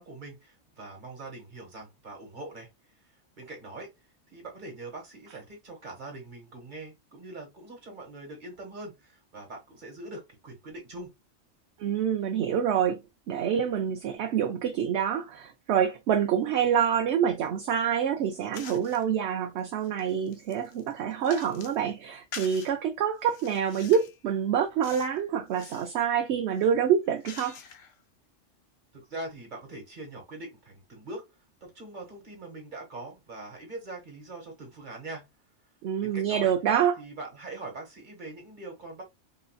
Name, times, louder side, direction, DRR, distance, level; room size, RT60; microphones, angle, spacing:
voice 1, 0.0-2.7 3.4-3.9 4.3-11.1 28.9-31.3 31.6-35.3 36.0-36.5 37.0-39.0, right 2 dB, 40° right, 1.5 m, -42 dB
voice 2, 11.8-13.0 13.3-27.6 35.8-37.0, right 8 dB, 70° right, 0.8 m, -26 dB
sound 1, 18.5-19.0 19.6-21.8 22.3-22.7 23.2-24.2 24.8-25.2 25.5-25.9 26.5-28.0, left 7 dB, 65° left, 0.9 m, -45 dB
4.0 x 2.5 x 2.2 m
omnidirectional pair, 1.2 m